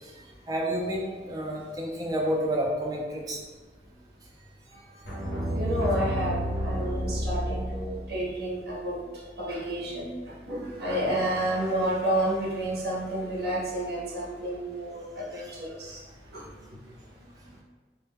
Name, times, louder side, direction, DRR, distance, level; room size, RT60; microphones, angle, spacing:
voice 1, 0.0-3.4 15.3-15.5, equal, 20° right, -1 dB, 0.3 m, -30 dB
voice 2, 4.7-5.0 5.5-9.0 9.4-17.6, right 1 dB, 60° right, -5 dB, 0.6 m, -31 dB
sound 1, 5.0-8.2, equal, 65° left, 0.7 m, -30 dB
2.1 x 2.1 x 3.4 m, 1.4 s
head